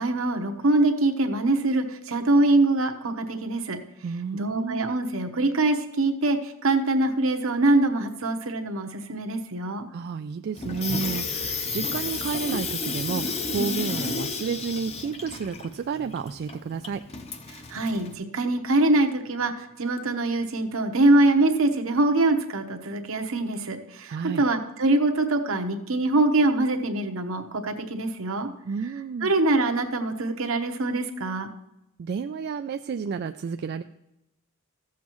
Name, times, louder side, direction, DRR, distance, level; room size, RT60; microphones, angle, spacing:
voice 1, 0.0-3.8 4.3-9.9 17.7-28.5 29.2-31.5, right 2 dB, 65° right, 6 dB, 1.0 m, -24 dB
voice 2, 4.0-4.9 9.9-17.0 24.1-24.4 28.7-29.3 32.0-33.8, right 5 dB, 50° right, 9 dB, 0.3 m, -31 dB
Water tap faucet / Sink (filling or washing), 10.6-18.1, left 4 dB, 30° left, 0.8 m, -32 dB
14.5 x 7.3 x 3.1 m, 0.87 s
head